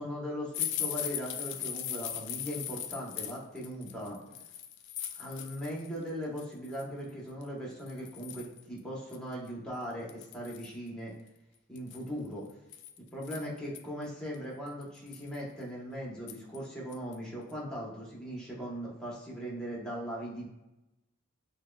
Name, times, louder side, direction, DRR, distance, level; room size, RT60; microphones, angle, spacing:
voice 1, 0.0-4.2 5.1-11.1 11.7-12.5 13.1-20.4, equal, 5° left, -4 dB, 1.0 m, -39 dB
sound 1, 0.5-5.9 6.2-6.8 7.4-7.5 7.9-8.6 9.1-9.2 9.5-9.6 10.1-10.8 11.8-13.8 14.3-14.4 14.8-15.4 16.3-16.6 16.9-17.1 17.5-17.6, left 10 dB, 60° left, 0.4 m, -38 dB
6.1 x 2.2 x 2.3 m, 0.94 s
head